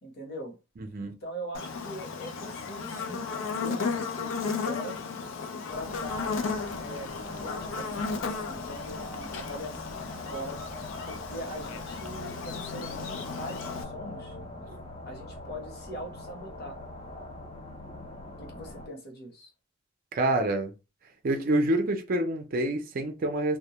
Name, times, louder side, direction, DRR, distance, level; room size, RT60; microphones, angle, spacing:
voice 1, 0.0-0.6 1.0-3.3 3.6-5.0 5.7-10.6 11.1-14.4 15.0-16.8 18.4-19.5, equal, 55° left, 0.9 m, -41 dB
voice 2, 0.8-1.1 20.1-20.7 21.2-23.6, right 1 dB, 45° right, 0.4 m, -27 dB
Buzz, 1.5-13.8, left 5 dB, 90° left, 0.4 m, -35 dB
sound 1, 5.7-18.9, left 2 dB, 30° left, 0.4 m, -43 dB
2.1 x 2.1 x 2.9 m
head